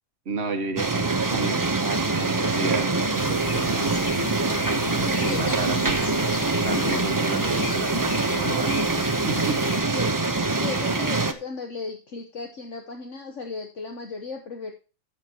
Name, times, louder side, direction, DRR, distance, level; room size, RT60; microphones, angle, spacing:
voice 1, 0.3-4.0 5.2-6.0 6.6-8.8 9.2-9.6, right 4 dB, 50° right, 8 dB, 1.4 m, -32 dB
sound 1, 0.8-11.3, right 3 dB, 20° right, 0.6 m, -24 dB
sound 2, 3.2-9.8, left 4 dB, 85° left, 2.0 m, -35 dB
voice 2, 5.1-5.8 9.9-10.2 10.6-14.7, left 4 dB, 60° left, 4 dB, 1.5 m, -36 dB
13.5 x 7.5 x 2.9 m, 0.34 s
omnidirectional pair, 1.5 m